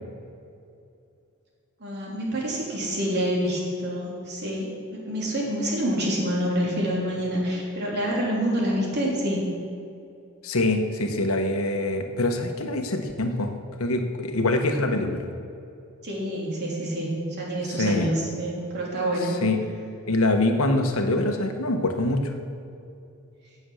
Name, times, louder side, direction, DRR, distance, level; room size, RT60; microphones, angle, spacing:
voice 1, 1.8-9.4 16.0-19.3, equal, 50° right, -3 dB, 3.4 m, -27 dB
voice 2, 10.4-13.5 13.8-15.2 17.6-18.1 19.2-19.6 20.1-22.4, left 2 dB, 80° left, 5 dB, 1.3 m, -24 dB
16.5 x 7.2 x 6.5 m, 2.6 s
head